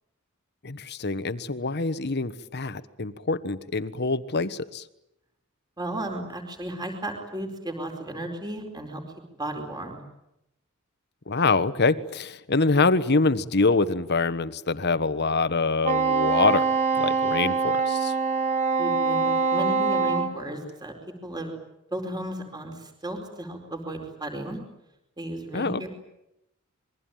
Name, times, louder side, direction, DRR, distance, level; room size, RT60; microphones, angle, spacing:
voice 1, 0.6-4.8 11.3-16.6 17.0-18.1 25.5-25.9, left 3 dB, 50° left, 13 dB, 1.3 m, -25 dB
voice 2, 5.8-9.0 9.4-10.0 18.8-21.0 21.2-21.5 21.9-24.6 25.2-25.9, right 1 dB, 20° right, 4 dB, 4.6 m, -34 dB
Wind instrument woodwind instrument, 15.8-20.3, right 4 dB, 35° right, 4.6 m, -24 dB
27.5 x 22.5 x 9.2 m, 0.86 s
head